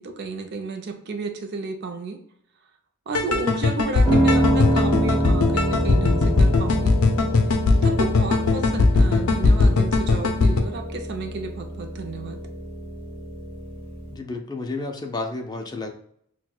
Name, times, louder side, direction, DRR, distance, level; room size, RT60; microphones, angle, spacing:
voice 1, 0.0-2.2 3.1-7.0 7.8-12.4, right 3 dB, 50° right, 4 dB, 0.4 m, -32 dB
sound 1, 3.1-10.6, left 3 dB, 80° left, 0.5 m, -20 dB
Piano, 4.0-14.2, right 1 dB, 10° right, 1.1 m, -26 dB
voice 2, 14.1-15.9, left 3 dB, 20° left, 3 dB, 0.4 m, -31 dB
5.8 x 2.2 x 2.2 m, 0.69 s
head